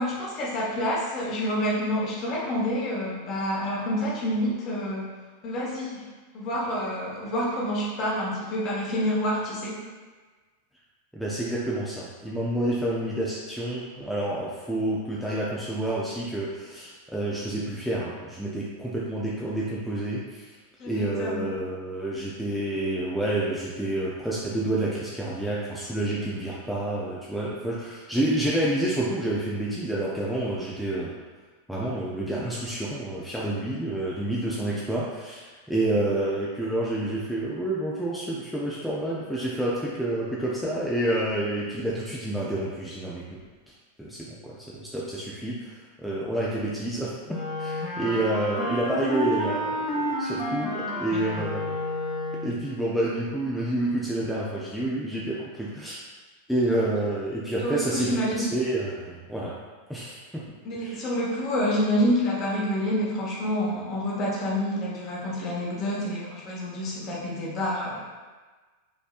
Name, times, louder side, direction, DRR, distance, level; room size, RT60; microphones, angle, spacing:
voice 1, 0.0-5.1 5.4-6.0 6.3-9.8 20.8-21.4 57.6-58.4 60.6-68.0, equal, 35° left, -4 dB, 1.3 m, -28 dB
voice 2, 11.1-20.5 20.8-31.1 31.7-43.2 44.0-51.7 52.4-56.0 56.5-59.6 59.9-60.4 60.8-61.0, right 1 dB, ahead, -6 dB, 0.6 m, -29 dB
Wind instrument woodwind instrument, 47.3-52.6, equal, 15° left, 1.0 m, -30 dB
5.3 x 3.3 x 2.5 m, 1.3 s
figure-of-eight pair, 90°, 0 cm